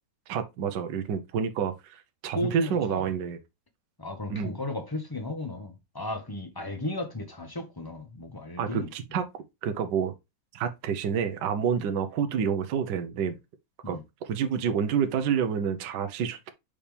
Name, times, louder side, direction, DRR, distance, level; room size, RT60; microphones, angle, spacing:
voice 1, 0.3-3.4 4.3-4.6 8.6-9.3 9.6-10.1 10.5-13.3 13.9-14.0 14.2-16.5, right 7 dB, 70° right, 1.5 m, -28 dB
voice 2, 2.3-3.0 4.0-8.9 13.8-14.0, left 2 dB, 15° left, 1.3 m, -34 dB
7.0 x 4.3 x 3.4 m
omnidirectional pair, 2.1 m